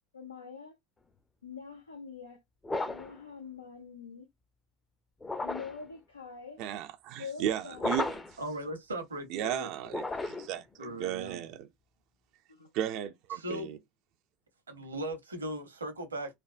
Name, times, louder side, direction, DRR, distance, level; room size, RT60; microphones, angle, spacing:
voice 1, 0.1-0.7 1.4-2.4 2.9-4.3 5.4-6.6 7.2-8.0 12.6-12.7, left 6 dB, 80° left, 0.5 m, -44 dB
sound 1, 2.6-3.2 5.2-5.8 7.8-8.4 9.9-10.6, left 2 dB, 15° left, 0.5 m, -34 dB
voice 2, 6.6-8.2 9.3-11.7 12.7-13.8, right 10 dB, 50° right, 0.3 m, -35 dB
voice 3, 8.4-9.7 10.8-11.5 13.3-13.8 14.7-16.3, right 1 dB, 75° right, 0.8 m, -38 dB
3.4 x 2.1 x 2.4 m
figure-of-eight pair, 70°, 0 cm